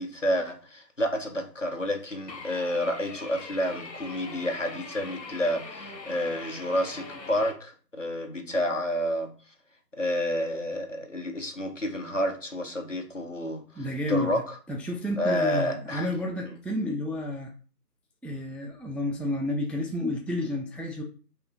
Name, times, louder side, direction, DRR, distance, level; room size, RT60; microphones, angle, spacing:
voice 1, 0.0-9.3 10.0-14.4 15.2-16.1 16.4-16.5, equal, 50° left, 0.6 m, -30 dB
sound 1, 2.3-7.5, left 3 dB, 90° left, 0.9 m, -42 dB
voice 2, 13.8-14.3 14.7-17.5 18.2-21.0, left 1 dB, 5° left, 0.3 m, -30 dB
2.7 x 2.6 x 3.6 m
figure-of-eight pair, 170°, 49 cm